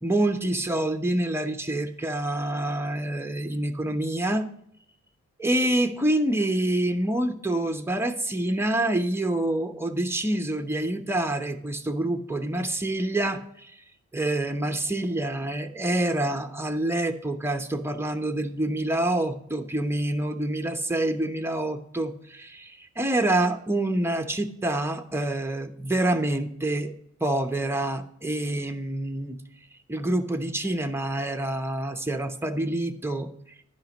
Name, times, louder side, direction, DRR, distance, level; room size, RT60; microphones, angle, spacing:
voice 1, 0.0-4.5 5.4-13.8 14.1-26.9 27.2-29.4 29.9-33.3, right 1 dB, 10° right, 6 dB, 0.9 m, -27 dB
10.5 x 5.2 x 6.1 m, 0.72 s
cardioid pair, 45°, 30 cm